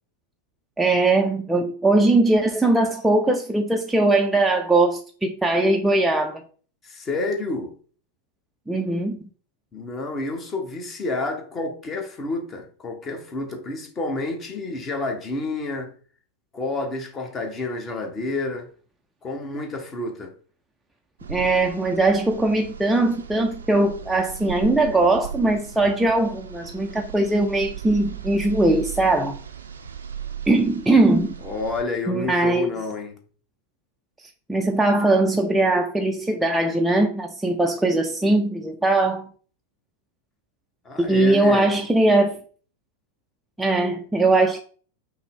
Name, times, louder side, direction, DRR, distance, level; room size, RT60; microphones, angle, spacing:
voice 1, 0.8-6.4 8.7-9.2 21.3-29.4 30.5-31.4 32.1-32.7 34.5-39.3 41.0-42.4 43.6-44.6, right 2 dB, 5° right, 0.4 m, -20 dB
voice 2, 6.8-7.7 9.7-15.9 16.5-18.7 19.2-20.3 31.4-33.2 40.8-41.7, left 2 dB, 25° left, 0.8 m, -29 dB
sound 1, 21.2-31.8, right 8 dB, 70° right, 0.4 m, -37 dB
5.5 x 2.0 x 3.7 m
figure-of-eight pair, 90°, 0 cm